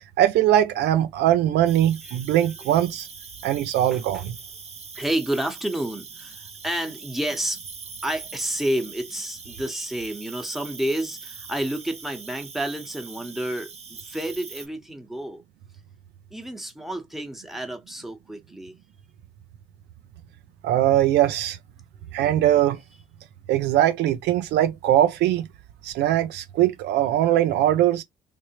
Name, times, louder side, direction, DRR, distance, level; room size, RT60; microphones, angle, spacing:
voice 1, 0.0-3.1 3.4-4.4 20.6-21.6 22.1-22.8 23.5-25.5 25.8-28.0, right 12 dB, 65° right, 0.5 m, -21 dB
Cricket, 1.6-14.7, right 5 dB, 35° right, 1.1 m, -42 dB
voice 2, 3.9-4.2 4.9-7.6 8.0-15.4 16.3-18.7, right 1 dB, ahead, 1.1 m, -30 dB
3.3 x 2.7 x 2.8 m
hypercardioid pair, 50°, 19 cm